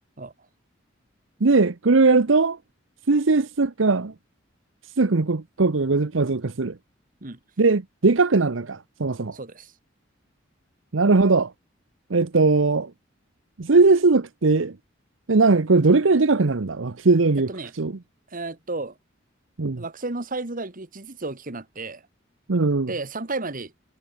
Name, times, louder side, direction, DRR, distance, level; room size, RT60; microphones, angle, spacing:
voice 1, 1.4-2.6 3.1-4.1 5.0-6.8 7.6-9.4 10.9-11.5 12.1-12.9 13.6-14.7 15.3-17.5 17.8-17.9 19.6-19.8 22.5-22.9, right 3 dB, 80° right, 0.9 m, -19 dB
voice 2, 9.3-9.7 17.5-17.7 18.3-19.0 19.8-22.0 22.9-23.7, right 3 dB, 45° right, 2.0 m, -32 dB
head